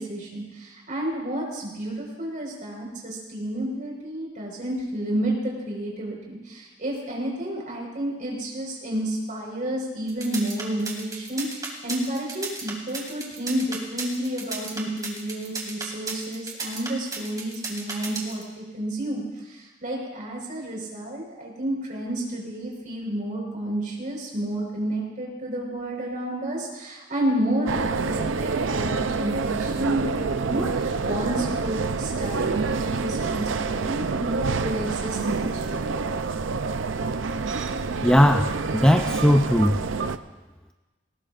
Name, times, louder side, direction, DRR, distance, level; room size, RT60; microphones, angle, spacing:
voice 1, 0.0-36.0, right 1 dB, 45° right, -1 dB, 4.8 m, -30 dB
sound 1, 10.1-18.4, right 3 dB, 20° right, 2.4 m, -33 dB
sound 2, 27.7-40.2, right 4 dB, 75° right, 0.6 m, -27 dB
voice 2, 38.0-39.8, equal, 5° left, 5 dB, 0.4 m, -18 dB
19.5 x 18.5 x 2.5 m, 1.2 s
head